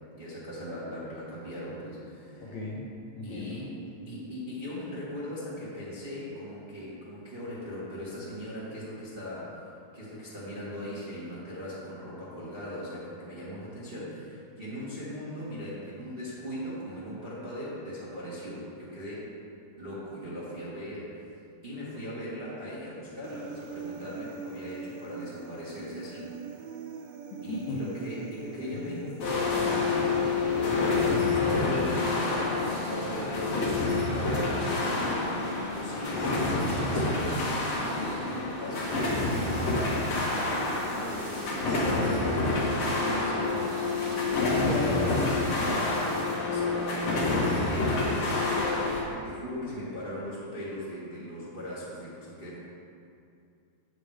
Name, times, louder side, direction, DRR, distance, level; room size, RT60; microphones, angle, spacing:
voice 1, 0.1-2.4 3.2-3.8 4.0-9.6 9.9-19.3 19.8-21.3 21.6-26.3 27.4-35.3 35.6-44.7 46.4-52.6, equal, 25° right, -9 dB, 1.3 m, -39 dB
voice 2, 2.4-2.9 3.1-3.6 27.5-27.8 28.7-29.1 44.3-46.0, left 1 dB, 70° left, -5 dB, 1.9 m, -33 dB
Human voice, 23.2-31.2, right 4 dB, 75° right, 2.1 m, -43 dB
sound 1, 29.2-49.0, left 3 dB, 50° left, 2.6 m, -28 dB
sound 2, 38.7-48.1, right 2 dB, 50° right, 1.3 m, -49 dB
9.2 x 7.4 x 5.0 m, 2.5 s
omnidirectional pair, 4.1 m